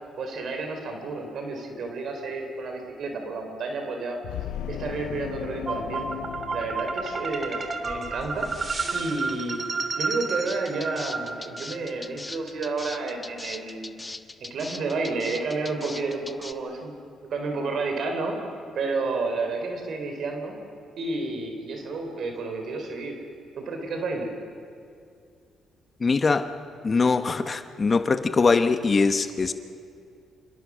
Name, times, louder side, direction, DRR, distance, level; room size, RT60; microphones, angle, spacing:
voice 1, 0.2-4.2 4.7-6.1 6.5-8.5 8.9-9.6 10.0-14.0 14.4-17.0 17.3-18.4 18.7-20.6 21.0-23.2 23.6-24.3, right 3 dB, 65° right, 4 dB, 4.0 m, -31 dB
sound 1, 4.2-7.7, left 12 dB, 90° left, 0.6 m, -37 dB
sound 2, 5.7-11.8, right 4 dB, 35° right, 2.9 m, -31 dB
sound 3, 10.5-16.5, left 2 dB, 15° left, 1.3 m, -39 dB
voice 2, 26.0-26.5 26.8-29.5, left 4 dB, 35° left, 9 dB, 1.1 m, -22 dB
28.0 x 27.5 x 6.4 m, 2.4 s
cardioid pair, 90°, 0 cm